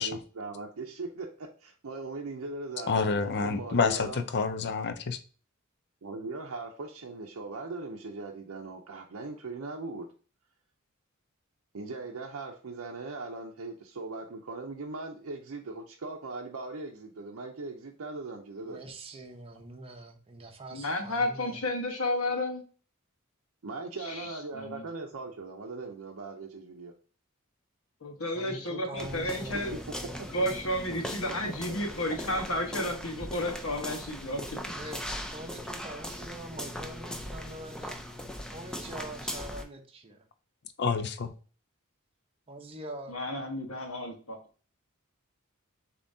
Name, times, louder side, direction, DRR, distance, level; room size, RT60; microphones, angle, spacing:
voice 1, 0.0-4.2 6.0-10.1 11.7-18.8 23.6-26.9 29.7-29.8 30.2-30.3 31.7-31.8, right 3 dB, 75° right, 0.6 m, -39 dB
voice 2, 2.9-5.2 40.8-41.3, left 4 dB, 55° left, 0.5 m, -28 dB
voice 3, 18.6-21.6 28.3-29.8 34.7-38.2 38.5-40.3 42.5-43.2, right 1 dB, 25° right, 0.7 m, -44 dB
voice 4, 20.7-22.6 24.0-24.3 24.5-24.8 28.0-29.7 30.3-34.6 43.1-44.4, left 1 dB, 75° left, 1.2 m, -32 dB
sound 1, 29.0-39.6, equal, 5° left, 0.5 m, -39 dB
6.9 x 2.8 x 2.7 m
head